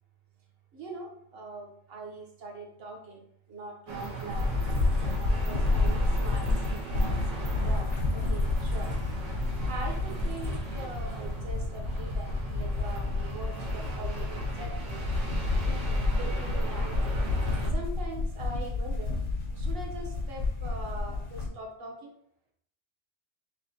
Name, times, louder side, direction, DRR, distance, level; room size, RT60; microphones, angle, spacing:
voice 1, 0.7-4.5 5.2-9.0 9.7-15.0 15.6-17.1 17.7-19.1 19.5-22.1, right 2 dB, 55° right, 1 dB, 1.0 m, -42 dB
sound 1, 3.9-17.7, right 4 dB, 85° right, 1.2 m, -39 dB
sound 2, 4.3-21.5, left 3 dB, 80° left, 1.1 m, -30 dB
5.6 x 2.1 x 2.7 m, 0.67 s
omnidirectional pair, 1.2 m